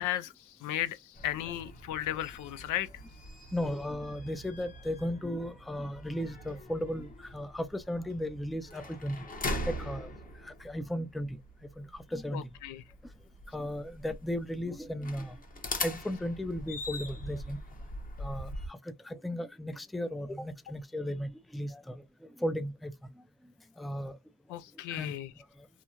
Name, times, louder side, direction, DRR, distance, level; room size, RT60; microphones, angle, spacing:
voice 1, 0.0-2.9 12.3-12.8 24.5-25.3, left 13 dB, 90° left, 0.5 m, -35 dB
sound 1, 1.1-18.7, left 1 dB, 30° left, 0.9 m, -42 dB
voice 2, 3.5-9.3 9.7-10.1 10.4-11.4 11.8-12.5 13.5-15.4 15.8-17.6 18.2-22.0 22.4-22.9 23.8-24.2 24.9-25.2, equal, ahead, 0.3 m, -35 dB
3.0 x 2.2 x 2.4 m
cardioid pair, 90°, 30 cm